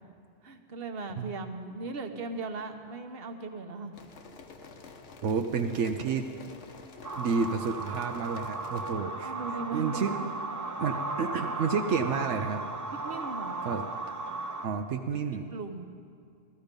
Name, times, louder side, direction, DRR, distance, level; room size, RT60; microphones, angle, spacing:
voice 1, 0.4-4.1 9.2-10.3 10.9-11.0 12.9-13.6 15.3-15.9, right 3 dB, 55° right, 5 dB, 1.2 m, -38 dB
sound 1, 3.9-8.9, left 4 dB, 85° left, 1.3 m, -49 dB
voice 2, 5.2-6.3 7.1-9.3 9.7-10.1 10.8-12.7 13.6-14.2 14.6-15.4, right 5 dB, 90° right, 5 dB, 1.0 m, -30 dB
sound 2, 7.0-14.7, right 2 dB, 30° right, 0.4 m, -36 dB
15.0 x 14.0 x 5.2 m, 2.4 s
omnidirectional pair, 1.2 m